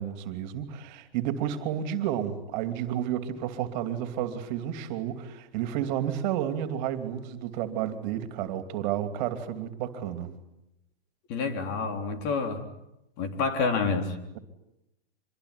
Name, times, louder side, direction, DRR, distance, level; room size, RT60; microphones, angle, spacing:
voice 1, 0.0-10.3, right 10 dB, 45° right, 10 dB, 2.9 m, -31 dB
voice 2, 11.3-12.7 13.2-14.2, left 4 dB, 40° left, 7 dB, 3.9 m, -28 dB
26.0 x 21.5 x 9.9 m, 0.86 s
hypercardioid pair, 140°, 31 cm